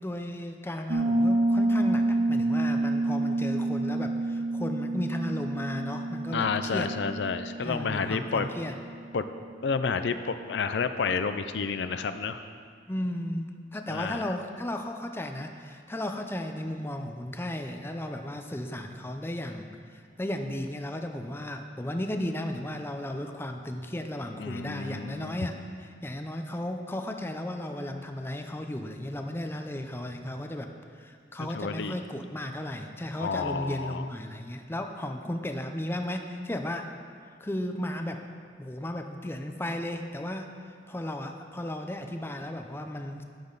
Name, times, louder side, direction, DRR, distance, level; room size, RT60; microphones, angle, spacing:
voice 1, 0.0-6.9 7.6-8.7 12.9-30.7 31.0-36.9 37.4-38.2 38.6-40.5 40.9-43.2, left 1 dB, 15° left, 5 dB, 0.6 m, -35 dB
Piano, 0.9-9.4, right 2 dB, 65° right, 1.1 m, -28 dB
voice 2, 6.3-8.5 9.1-9.2 9.6-12.4 13.9-14.2 24.4-25.4 31.4-31.9 33.2-34.0, left 5 dB, 75° left, 10 dB, 0.5 m, -30 dB
11.5 x 9.2 x 4.0 m, 2.1 s
head